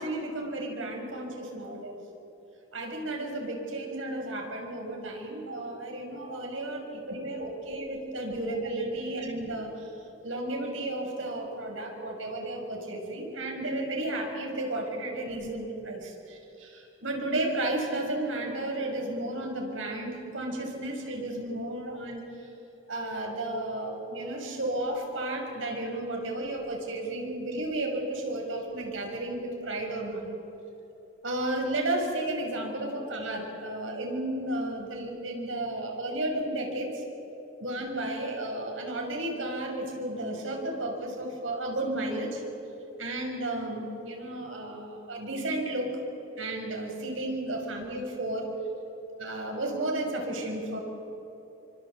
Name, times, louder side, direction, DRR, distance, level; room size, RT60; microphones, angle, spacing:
voice 1, 0.0-2.0 2.7-9.9 10.2-22.5 22.9-30.3 31.2-37.0 37.6-42.4 43.0-45.9 46.4-48.5 49.2-50.8, right 1 dB, 85° right, 1 dB, 6.4 m, -33 dB
27.0 x 25.0 x 8.3 m, 2.9 s
head